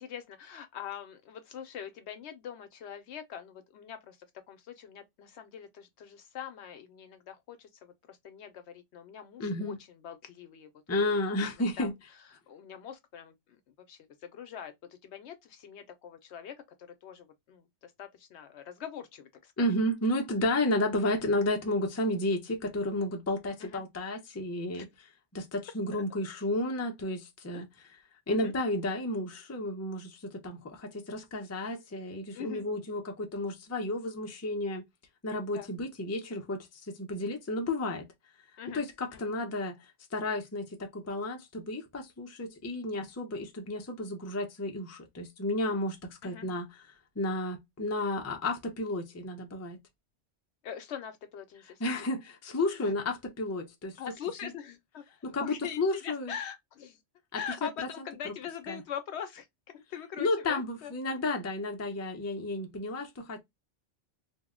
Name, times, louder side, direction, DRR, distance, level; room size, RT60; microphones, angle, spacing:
voice 1, 0.0-4.2 4.5-10.7 11.2-11.3 11.8-11.9 12.3-13.6 13.9-19.7 23.6-23.8 24.7-24.9 25.9-26.0 27.5-27.6 28.3-28.5 32.3-32.6 35.5-35.7 38.6-38.8 39.1-39.3 46.2-46.5 50.6-52.1 52.8-52.9 54.0-57.0 57.3-59.5 59.7-60.9, left 8 dB, 70° left, 0.8 m, -43 dB
voice 2, 9.4-9.8 10.9-11.9 19.6-24.9 25.3-27.7 28.3-34.8 35.2-38.1 38.7-46.7 47.2-49.8 51.8-54.0 54.4-54.5 55.2-56.3 57.3-57.7 58.7-58.8 60.2-63.4, left 1 dB, 20° left, 0.4 m, -32 dB
2.6 x 2.0 x 3.5 m
omnidirectional pair, 1.2 m